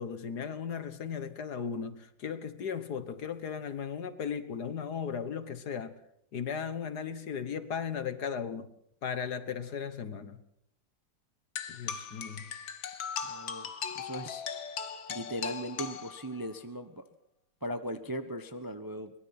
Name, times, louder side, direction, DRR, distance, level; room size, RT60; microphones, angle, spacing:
voice 1, 0.0-6.0 6.3-8.7 9.0-10.4 11.7-12.5, left 7 dB, 60° left, 1.8 m, -36 dB
sound 1, 11.6-16.6, left 7 dB, 90° left, 2.1 m, -39 dB
voice 2, 13.2-13.7 13.9-14.4 15.1-17.0 17.6-19.1, equal, 15° right, 0.9 m, -38 dB
23.0 x 21.0 x 5.9 m
omnidirectional pair, 2.1 m